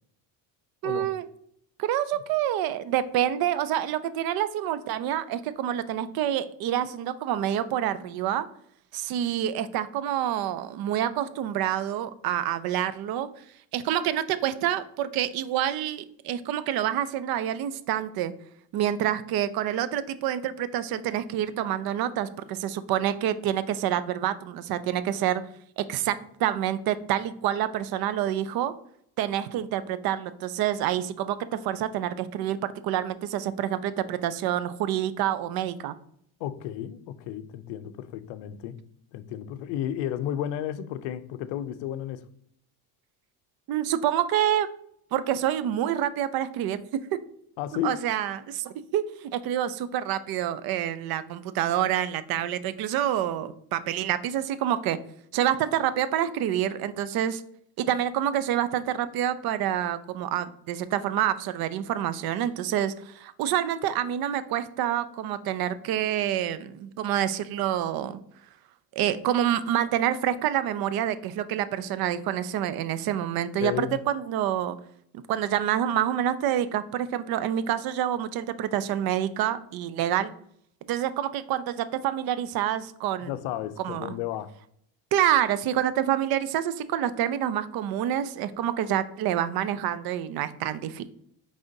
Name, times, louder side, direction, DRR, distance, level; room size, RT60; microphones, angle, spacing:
voice 1, 0.8-1.2 1.8-8.5 8.9-13.3 13.7-18.3 18.7-25.4 25.8-28.7 29.2-35.9 43.7-44.7 45.1-46.8 47.8-55.0 55.3-57.4 57.8-68.2 68.9-74.8 75.3-80.3 80.9-83.3 83.8-84.1 85.1-91.0, right 11 dB, 60° right, 0.5 m, -27 dB
voice 2, 36.4-38.8 39.1-42.3 47.6-48.0 73.6-74.0 83.2-84.5, left 11 dB, 80° left, 0.5 m, -33 dB
5.1 x 3.4 x 2.6 m
cardioid pair, 100°, 42 cm